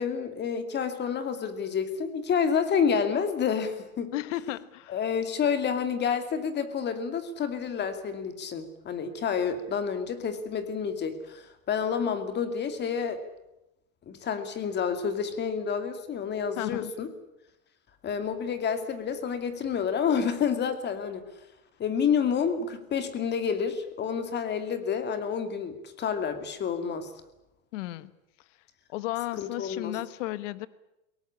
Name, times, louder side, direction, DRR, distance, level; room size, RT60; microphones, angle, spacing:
voice 1, 0.0-4.1 4.9-13.2 14.1-17.1 18.0-21.2 21.8-27.1 29.4-29.9, left 6 dB, 25° left, 10 dB, 2.5 m, -29 dB
voice 2, 4.1-5.0 16.6-16.9 27.7-28.1 28.9-30.7, left 16 dB, 60° left, 17 dB, 1.3 m, -34 dB
22.5 x 18.0 x 9.9 m, 0.90 s
supercardioid pair, 140°, 42 cm